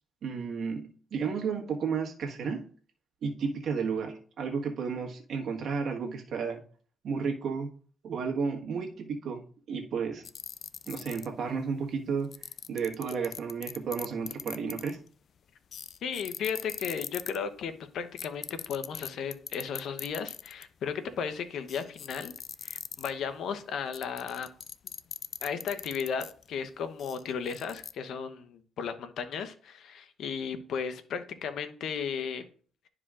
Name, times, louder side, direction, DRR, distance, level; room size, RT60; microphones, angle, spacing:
voice 1, 0.2-2.7 3.2-6.6 7.0-7.7 8.0-9.4 9.7-10.2 10.9-12.3 12.7-15.0, right 5 dB, 65° right, 2 dB, 1.4 m, -32 dB
sound 1, 10.2-11.5 12.3-15.1 15.7-17.4 18.2-20.6 21.1-21.2 21.7-23.3 23.9-26.4 27.0-27.9, left 7 dB, 55° left, 0.3 m, -40 dB
voice 2, 16.0-22.3 22.6-24.5 25.4-32.4, left 6 dB, 70° left, 10 dB, 0.9 m, -35 dB
11.5 x 4.9 x 2.5 m, 0.43 s
cardioid pair, 90°, 0 cm